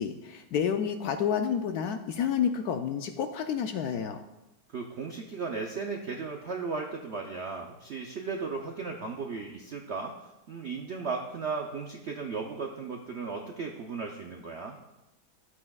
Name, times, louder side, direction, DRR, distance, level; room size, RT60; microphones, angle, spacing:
voice 1, 0.0-4.2, left 8 dB, 70° left, 7 dB, 0.9 m, -29 dB
voice 2, 4.7-10.1 10.5-14.8, right 4 dB, 70° right, 2 dB, 0.6 m, -36 dB
11.5 x 8.5 x 2.3 m, 0.97 s
omnidirectional pair, 2.0 m